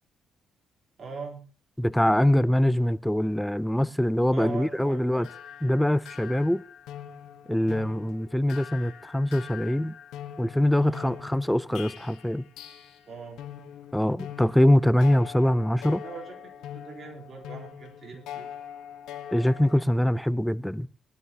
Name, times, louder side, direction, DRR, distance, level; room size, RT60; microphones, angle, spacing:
voice 1, 1.0-1.4 4.3-5.3 10.8-11.3 13.1-13.4 16.0-16.4 16.7-18.5, right 5 dB, 50° right, 3.8 m, -41 dB
voice 2, 1.8-5.3 5.6-6.6 7.5-10.0 10.4-12.5 13.9-16.0 19.3-20.9, left 1 dB, 5° left, 0.5 m, -23 dB
sound 1, 4.4-13.1 13.4-19.8, left 9 dB, 90° left, 1.3 m, -43 dB
20.0 x 12.5 x 2.9 m
cardioid pair, 90°, 0 cm